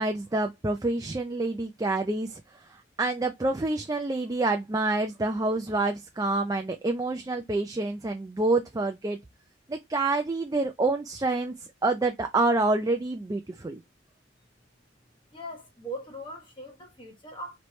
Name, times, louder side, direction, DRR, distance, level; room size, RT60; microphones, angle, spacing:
voice 1, 0.0-2.4 3.0-9.2 9.7-13.8, right 2 dB, 20° right, 0.4 m, -27 dB
voice 2, 15.3-17.6, right 1 dB, 30° left, 1.3 m, -40 dB
4.5 x 3.2 x 3.1 m
head